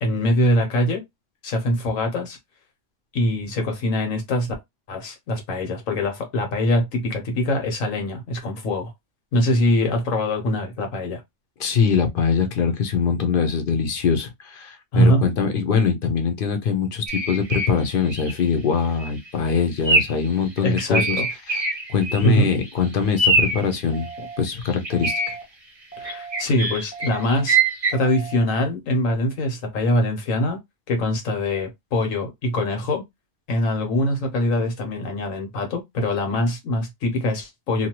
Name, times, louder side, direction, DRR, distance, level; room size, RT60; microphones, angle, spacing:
voice 1, 0.0-1.0 1.4-2.4 3.1-4.5 4.9-8.9 9.3-11.2 14.9-15.2 20.6-21.3 22.2-22.5 24.2-24.3 26.0-27.6 27.9-30.6 30.9-33.0 33.5-37.9, left 1 dB, 90° left, 1.4 m, -23 dB
voice 2, 11.6-21.2 21.5-21.6 21.9-24.1 24.4-25.1, left 6 dB, 50° left, 0.7 m, -22 dB
sound 1, 17.1-17.8 18.1-18.4 18.8-19.1 19.8-20.3 20.6-22.4 22.6-22.7 23.2-23.7 24.6-25.3 26.0-27.9, right 2 dB, 35° right, 0.7 m, -22 dB
sound 2, 23.9-24.4 24.9-25.4 25.9-26.4 26.9-27.4 27.9-28.4, right 5 dB, 15° left, 0.9 m, -38 dB
2.7 x 2.3 x 2.9 m
omnidirectional pair, 1.3 m